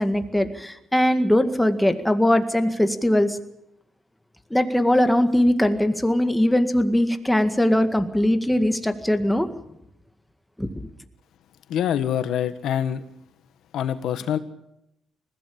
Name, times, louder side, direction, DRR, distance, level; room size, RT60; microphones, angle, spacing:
voice 1, 0.0-3.4 4.5-9.5 10.6-10.7, left 1 dB, 5° left, 8 dB, 1.9 m, -20 dB
voice 2, 11.7-13.0 13.7-14.4, left 9 dB, 75° left, 12 dB, 1.5 m, -25 dB
20.5 x 15.5 x 8.6 m, 0.82 s
cardioid pair, 90°, 0 cm